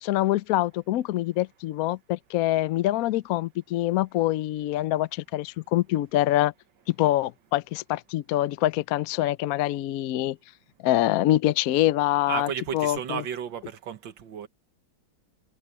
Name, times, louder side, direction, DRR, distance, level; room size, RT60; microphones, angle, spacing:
voice 1, 0.0-6.5 6.9-10.4 10.8-13.2, left 15 dB, 85° left, 0.7 m, -25 dB
voice 2, 12.3-14.5, right 8 dB, 70° right, 1.9 m, -33 dB
omnidirectional pair, 2.2 m